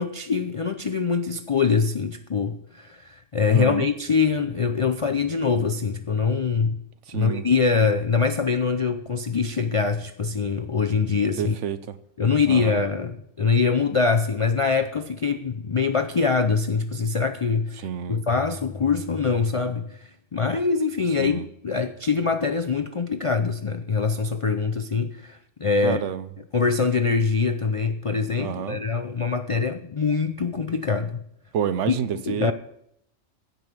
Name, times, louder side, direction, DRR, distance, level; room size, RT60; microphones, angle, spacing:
voice 1, 0.0-6.8 7.1-11.5 12.2-26.0 26.5-31.2 32.3-32.5, left 5 dB, 55° left, 8 dB, 0.3 m, -24 dB
voice 2, 3.5-3.9 7.1-7.4 11.4-12.0 12.5-12.8 17.8-18.2 21.2-21.4 25.8-26.3 28.4-28.8 31.5-32.5, right 8 dB, 75° right, 13 dB, 1.0 m, -29 dB
16.0 x 5.4 x 6.0 m, 0.75 s
omnidirectional pair, 1.2 m